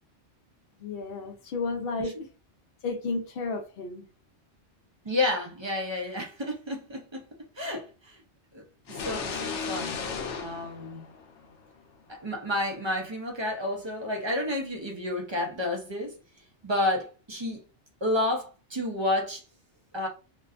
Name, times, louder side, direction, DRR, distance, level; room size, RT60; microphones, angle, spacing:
voice 1, 0.8-2.2 2.8-4.0, left 3 dB, 60° left, 0.8 m, -32 dB
voice 2, 5.1-7.2 7.6-8.2 8.5-10.0 10.4-11.1 12.1-16.1 16.6-17.6 18.0-19.4 19.9-20.1, left 1 dB, 35° right, 0.4 m, -30 dB
sound 1, 8.9-11.7, left 5 dB, 85° left, 0.9 m, -35 dB
2.5 x 2.1 x 2.4 m
omnidirectional pair, 1.2 m